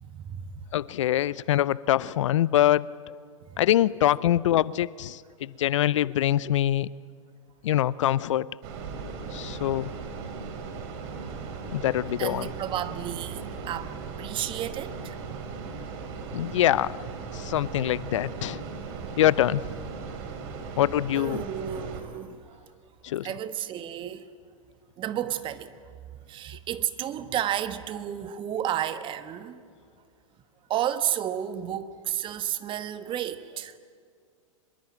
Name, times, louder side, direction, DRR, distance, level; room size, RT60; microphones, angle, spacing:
voice 1, 0.0-0.6 3.5-3.6 12.2-15.2 18.9-19.1 21.1-22.7 23.2-24.2 25.0-25.9 26.3-29.6 30.7-33.7, right 10 dB, 30° right, 1.3 m, -32 dB
voice 2, 0.7-2.9 3.6-6.9 7.6-8.5 9.3-9.9 11.7-12.5 16.3-16.9 17.3-18.6 19.2-19.6 20.8-21.4 23.0-23.3, left 12 dB, 65° left, 0.6 m, -24 dB
sound 1, 8.6-22.0, right 5 dB, 50° right, 4.0 m, -38 dB
24.5 x 22.0 x 9.0 m
hypercardioid pair, 110°, 17 cm